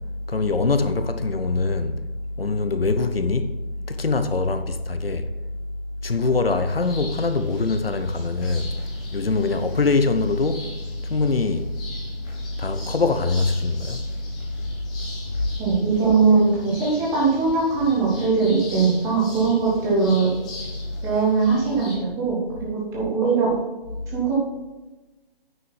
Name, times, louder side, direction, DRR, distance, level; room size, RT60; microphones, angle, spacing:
voice 1, 0.3-2.0 2.4-3.5 3.9-5.3 6.0-15.7 20.6-21.1, left 3 dB, 70° left, 1.0 m, -24 dB
sound 1, 6.8-22.0, left 1 dB, 5° left, 0.6 m, -40 dB
voice 2, 15.6-20.3 21.0-23.5 24.1-24.4, right 4 dB, 10° right, 1.6 m, -21 dB
9.5 x 6.3 x 5.7 m
figure-of-eight pair, 150°, 31 cm